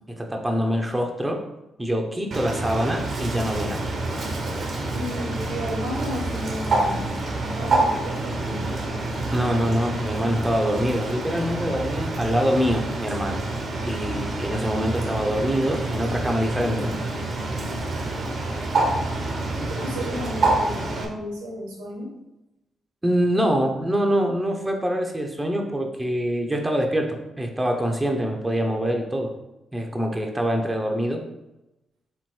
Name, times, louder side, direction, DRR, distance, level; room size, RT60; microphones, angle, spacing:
voice 1, 0.1-1.4 1.8-4.0 9.3-13.4 13.8-16.9 23.0-29.3 29.7-31.2, equal, 15° right, 2 dB, 0.8 m, -25 dB
Bird, 2.3-21.1, right 2 dB, 55° right, 0.8 m, -27 dB
voice 2, 4.9-9.0 16.7-17.2 19.5-22.1, equal, 90° right, -3 dB, 1.1 m, -34 dB
3.6 x 3.1 x 4.4 m, 0.95 s
hypercardioid pair, 40°, 0 cm